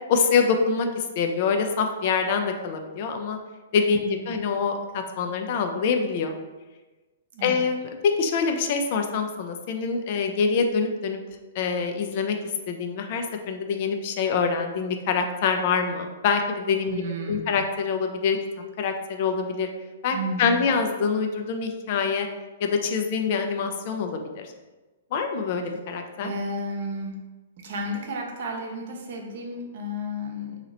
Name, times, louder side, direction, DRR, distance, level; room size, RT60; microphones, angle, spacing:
voice 1, 0.1-3.4 3.7-6.3 7.4-11.2 11.5-12.4 12.7-17.0 17.3-18.4 18.8-19.7 20.0-22.3 22.6-24.5 25.1-26.3, left 5 dB, 45° left, 5 dB, 0.4 m, -25 dB
voice 2, 4.0-4.4 7.3-7.6 16.9-17.5 20.1-20.7 26.2-27.2 27.6-30.6, equal, 55° right, 1 dB, 0.7 m, -32 dB
2.9 x 2.8 x 3.8 m, 1.2 s
figure-of-eight pair, 110°, 0 cm